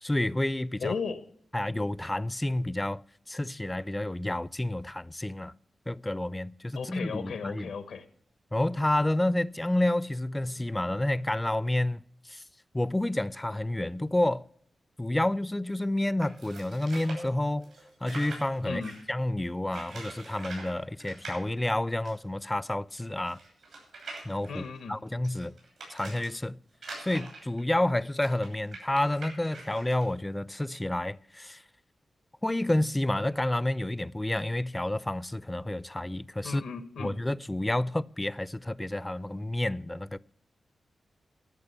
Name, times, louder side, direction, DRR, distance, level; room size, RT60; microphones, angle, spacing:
voice 1, 0.0-1.0 1.5-3.0 3.3-5.5 5.9-7.7 8.5-12.0 12.3-12.4 12.7-14.5 15.0-17.7 18.0-18.8 19.1-23.4 24.2-24.6 24.9-25.5 25.9-26.6 27.0-31.6 32.4-36.6 37.0-40.2, left 1 dB, 15° left, 0.4 m, -29 dB
voice 2, 0.8-1.2 6.8-8.0 18.6-18.9 24.5-25.0 36.4-37.2, left 5 dB, 90° left, 1.1 m, -35 dB
sound 1, 16.2-19.1 19.7-20.7 21.0-21.4 22.0-22.1 22.3-22.4 23.0-26.3 26.7-30.0, right 3 dB, 90° right, 6.8 m, -44 dB
13.5 x 6.6 x 8.2 m
cardioid pair, 60°, 0 cm